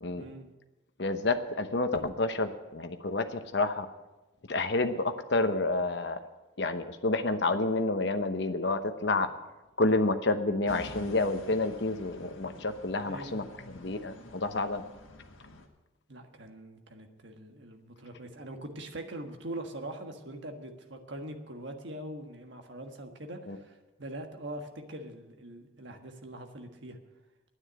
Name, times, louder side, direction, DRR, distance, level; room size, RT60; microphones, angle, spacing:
voice 1, 0.2-0.5 12.2-12.3 13.0-13.5 16.1-27.0, right 1 dB, 60° right, 5 dB, 1.5 m, -43 dB
voice 2, 1.0-3.9 4.5-6.2 6.6-9.3 9.8-13.4 13.7-14.8 23.5-23.6, left 2 dB, 55° left, 8 dB, 1.0 m, -29 dB
sound 1, 10.7-15.7, left 2 dB, 80° left, 1.7 m, -48 dB
9.7 x 9.6 x 9.1 m, 1.1 s
head